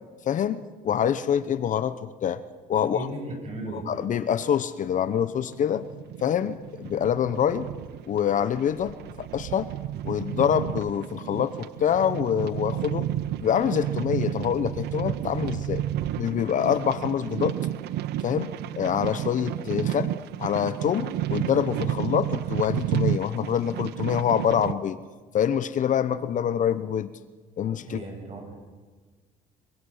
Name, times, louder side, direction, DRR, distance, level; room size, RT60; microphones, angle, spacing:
voice 1, 0.2-2.4 2.7-3.1 3.7-5.9 6.2-7.7 8.1-9.7 10.0-13.1 13.4-15.8 16.2-17.6 18.2-25.0 25.3-27.1 27.6-28.0, left 9 dB, 50° left, 13 dB, 0.9 m, -26 dB
voice 2, 2.8-3.9 27.9-28.6, right 1 dB, 40° right, 2 dB, 7.6 m, -36 dB
sound 1, 5.4-24.7, right 13 dB, 75° right, 0.7 m, -31 dB
24.0 x 23.5 x 5.6 m, 1.4 s
cardioid pair, 110°, 17 cm